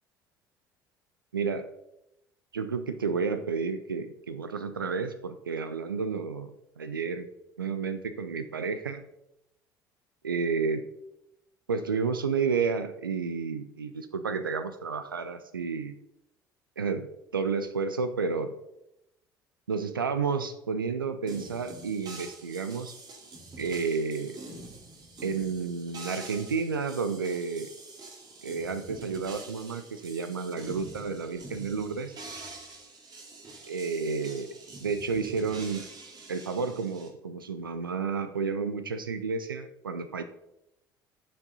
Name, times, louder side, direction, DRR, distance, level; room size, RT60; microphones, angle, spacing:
voice 1, 1.3-1.7 2.5-6.5 6.8-7.3 7.6-9.0 10.2-10.8 11.7-15.9 16.8-17.1 17.3-18.5 19.7-22.9 23.6-24.4 25.2-27.7 28.4-32.1 33.7-34.5 34.8-35.9 36.3-40.2, right 5 dB, 85° right, 10 dB, 0.5 m, -31 dB
sound 1, 21.3-37.1, right 3 dB, 40° right, 2.3 m, -46 dB
11.5 x 6.1 x 4.1 m, 0.85 s
figure-of-eight pair, 60°, 11 cm